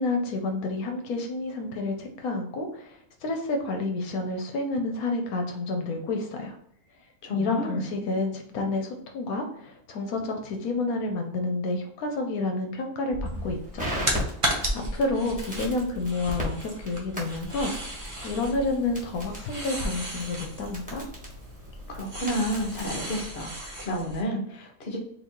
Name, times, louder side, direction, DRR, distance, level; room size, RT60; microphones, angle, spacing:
voice 1, 0.0-6.5 7.3-13.9 14.9-17.7 18.2-21.0, left 2 dB, 80° left, 3 dB, 1.2 m, -29 dB
voice 2, 7.2-7.8 21.9-25.0, equal, 50° left, 2 dB, 1.1 m, -31 dB
Crackle, 13.1-23.0, equal, 5° right, 1.3 m, -38 dB
sound 1, 13.2-24.2, right 1 dB, 25° right, 1.0 m, -35 dB
3.9 x 2.8 x 4.5 m, 0.70 s
omnidirectional pair, 1.5 m